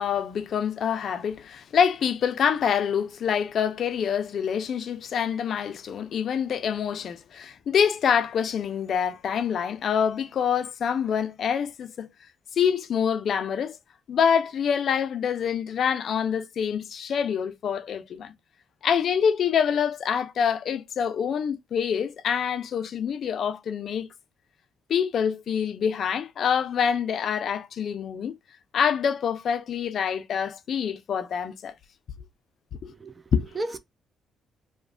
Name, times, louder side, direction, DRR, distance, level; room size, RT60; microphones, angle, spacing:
voice 1, 0.0-12.1 12.6-13.8 14.1-18.3 18.8-24.1 24.9-28.3 28.7-31.7 32.8-32.9 33.3-33.5, left 7 dB, 60° left, 0.4 m, -26 dB
voice 2, 32.8-33.8, right 2 dB, 25° right, 0.4 m, -35 dB
3.0 x 2.1 x 2.4 m
cardioid pair, 90°, 0 cm